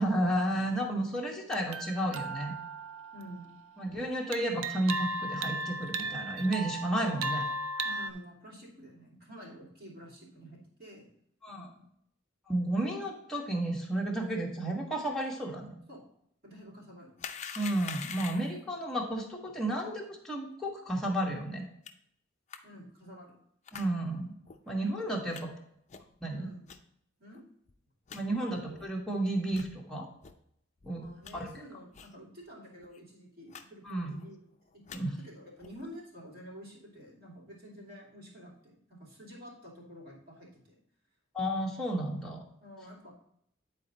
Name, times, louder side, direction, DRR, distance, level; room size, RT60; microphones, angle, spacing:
voice 1, 0.0-2.5 3.8-7.5 11.4-11.7 12.5-15.8 17.5-21.6 23.7-24.3 24.7-25.5 26.2-26.5 28.1-30.1 30.9-31.0 31.3-31.5 33.8-34.2 34.9-35.1 41.3-42.4, right 1 dB, 5° left, -3 dB, 1.3 m, -32 dB
sound 1, 1.5-3.8 4.3-8.1, right 2 dB, 80° right, 0.5 m, -36 dB
voice 2, 3.1-3.5 7.8-11.1 11.5-11.8 15.9-16.0 16.4-17.1 22.6-23.4 25.2-25.4 26.3-26.7 27.2-27.4 28.3-28.8 31.0-34.4 34.7-40.7 42.6-43.1, equal, 50° right, -4 dB, 2.9 m, -49 dB
sound 2, 17.2-18.6 21.9-22.0 22.5-22.6 23.7-23.9 24.5-24.6 25.3-25.4 25.9-26.2 26.7-26.8 27.3-27.4 27.7-27.8 28.1-28.2 28.8-28.9 29.5-29.7 30.2-30.3 30.8-31.3 31.9-32.2 32.4-32.5 32.8-33.0 33.5-33.6 33.9-34.3 34.7-35.0 35.6-35.8, left 7 dB, 35° left, 0.5 m, -44 dB
9.5 x 4.4 x 4.1 m, 0.71 s
head